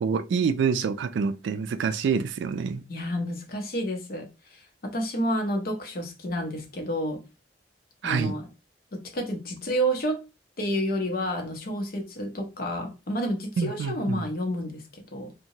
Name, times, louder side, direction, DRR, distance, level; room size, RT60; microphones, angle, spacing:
voice 1, 0.0-2.8 8.0-8.3 13.6-14.2, right 6 dB, 85° right, 0.3 m, -26 dB
voice 2, 2.9-7.2 8.0-8.5 8.9-10.2 10.6-15.3, equal, 55° left, 0.7 m, -30 dB
2.9 x 2.1 x 2.7 m
head